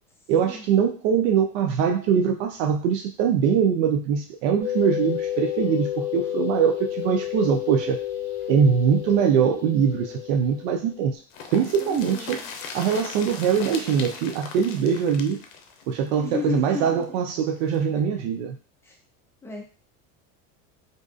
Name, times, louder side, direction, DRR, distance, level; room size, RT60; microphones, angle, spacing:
voice 1, 0.3-8.0 8.5-11.1 11.5-12.4 12.7-15.4 15.9-18.5, right 7 dB, 75° right, 3 dB, 0.5 m, -22 dB
sound 1, 4.6-11.1, left 11 dB, 40° right, 1.4 m, -31 dB
sound 2, 11.3-17.0 17.4-17.5 17.7-17.8, left 5 dB, 85° left, 0.6 m, -39 dB
voice 2, 11.8-12.5 16.2-17.0 18.0-18.1 18.8-19.0 19.4-19.6, left 6 dB, 5° left, 0 dB, 0.4 m, -33 dB
2.6 x 2.3 x 2.4 m, 0.37 s
supercardioid pair, 120°, 39 cm